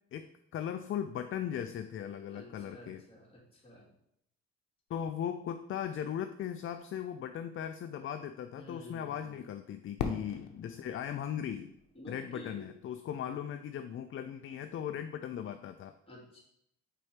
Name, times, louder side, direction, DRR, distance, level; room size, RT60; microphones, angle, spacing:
voice 1, 0.1-3.0 4.9-11.7 12.1-15.9, left 9 dB, 45° left, 8 dB, 0.4 m, -38 dB
voice 2, 2.3-3.9 8.6-9.4 11.9-12.7 16.1-16.4, left 1 dB, 20° left, -4 dB, 2.3 m, -50 dB
Fireworks, 10.0-12.9, left 6 dB, 85° left, 0.8 m, -41 dB
4.4 x 4.2 x 4.9 m, 0.75 s
cardioid pair, 90°, 30 cm